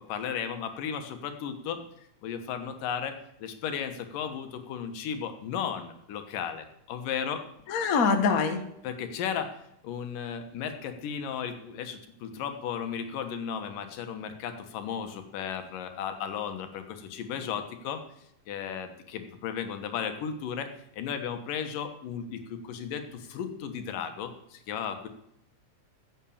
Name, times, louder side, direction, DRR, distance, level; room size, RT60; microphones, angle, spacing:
voice 1, 0.1-1.8 2.2-7.4 8.8-9.6 9.8-18.0 18.5-25.1, left 7 dB, 85° left, 7 dB, 2.9 m, -35 dB
voice 2, 7.7-8.6, left 5 dB, 60° left, 7 dB, 0.8 m, -24 dB
14.5 x 8.2 x 7.1 m, 0.78 s
omnidirectional pair, 3.7 m